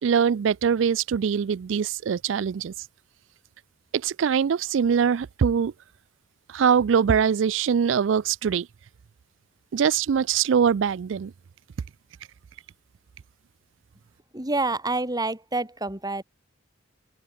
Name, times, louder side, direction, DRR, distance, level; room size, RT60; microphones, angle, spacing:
voice 1, 0.0-2.7 3.9-5.7 6.5-8.7 9.7-11.3, right 7 dB, 70° right, 0.4 m, -22 dB
voice 2, 14.3-16.2, right 2 dB, 20° right, 3.2 m, -27 dB
open air
head